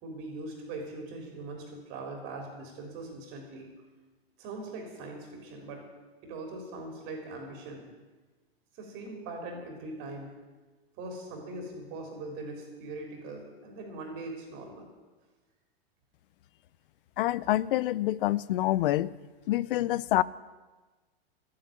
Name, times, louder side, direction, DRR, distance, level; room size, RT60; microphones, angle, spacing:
voice 1, 0.0-3.7 4.4-5.8 6.2-7.8 8.7-10.3 11.0-14.9, right 2 dB, 40° right, 2 dB, 3.4 m, -41 dB
voice 2, 17.2-19.1 19.5-20.2, left 15 dB, 60° left, 21 dB, 0.6 m, -26 dB
11.5 x 8.9 x 8.9 m, 1.3 s
hypercardioid pair, 130°, 31 cm